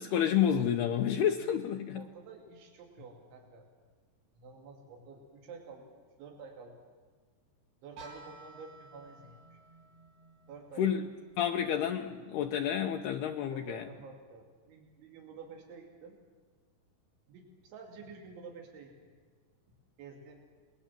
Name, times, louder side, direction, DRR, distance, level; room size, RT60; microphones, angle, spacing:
voice 1, 0.0-2.1 10.8-11.0 11.4-13.8, left 9 dB, 75° left, 3 dB, 2.6 m, -29 dB
voice 2, 1.9-3.7 4.4-6.8 7.8-9.6 10.5-10.9 13.5-16.2 17.3-18.9 20.0-20.4, right 4 dB, 90° right, 2 dB, 4.9 m, -50 dB
sound 1, 8.0-13.8, right 2 dB, 60° right, 4.6 m, -56 dB
29.5 x 21.0 x 7.4 m, 1.5 s
omnidirectional pair, 5.2 m